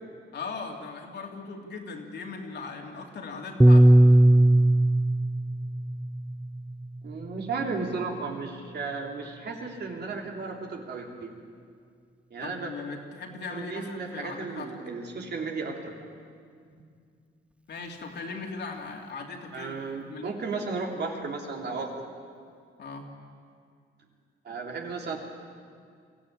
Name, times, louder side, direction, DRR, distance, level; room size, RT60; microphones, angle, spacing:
voice 1, 0.3-3.9 12.4-14.7 17.7-19.8 20.1-20.3 22.8-23.1, left 4 dB, 60° left, 1 dB, 2.9 m, -38 dB
Piano, 3.6-8.0, right 1 dB, 5° right, 0.5 m, -20 dB
voice 2, 7.0-11.3 12.3-12.7 13.5-16.0 16.7-16.8 19.5-22.1 24.4-25.2, right 4 dB, 55° right, 1 dB, 3.1 m, -34 dB
23.0 x 15.0 x 8.7 m, 2.2 s
cardioid pair, 90°, 20 cm